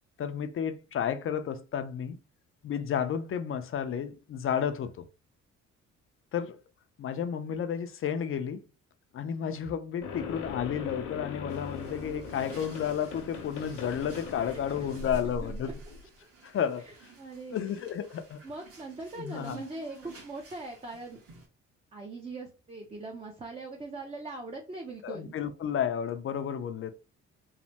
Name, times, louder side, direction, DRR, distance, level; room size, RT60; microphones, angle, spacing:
voice 1, 0.2-2.2 2.6-5.0 6.3-6.6 7.0-8.6 9.1-15.8 16.4-16.8 17.5-18.4 19.2-19.6 25.0-26.9, left 8 dB, 45° left, 0.5 m, -32 dB
sound 1, 10.0-16.0, left 4 dB, 85° left, 0.7 m, -40 dB
sound 2, 11.5-21.5, right 3 dB, 50° right, 1.2 m, -55 dB
voice 2, 14.4-14.9 15.4-15.7 16.8-17.6 18.4-21.2 21.9-25.3, right 2 dB, 20° right, 0.6 m, -41 dB
3.2 x 2.1 x 2.8 m
cardioid pair, 90°, 30 cm